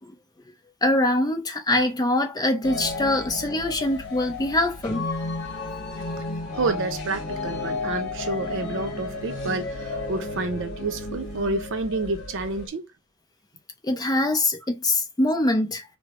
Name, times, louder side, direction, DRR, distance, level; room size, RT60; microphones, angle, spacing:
voice 1, 0.8-5.1 13.8-15.8, left 1 dB, 20° left, 0.5 m, -23 dB
sound 1, 2.6-12.7, left 3 dB, 55° left, 1.0 m, -33 dB
voice 2, 6.5-12.9, right 3 dB, 60° right, 0.6 m, -29 dB
3.2 x 2.0 x 3.4 m
head